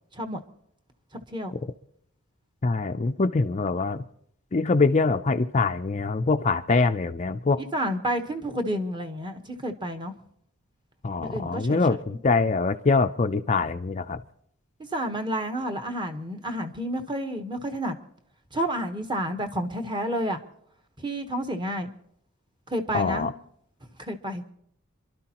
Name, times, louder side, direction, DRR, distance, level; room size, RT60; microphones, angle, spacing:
voice 1, 2.6-4.0 4.5-7.6 11.0-14.2 22.9-23.3, left 3 dB, 30° left, 7 dB, 0.5 m, -24 dB
voice 2, 7.6-10.1 11.2-12.0 14.9-18.0 18.5-20.4 21.0-21.9 22.7-23.3 24.0-24.4, equal, 20° right, 5 dB, 1.1 m, -30 dB
27.5 x 12.0 x 3.0 m, 0.68 s
head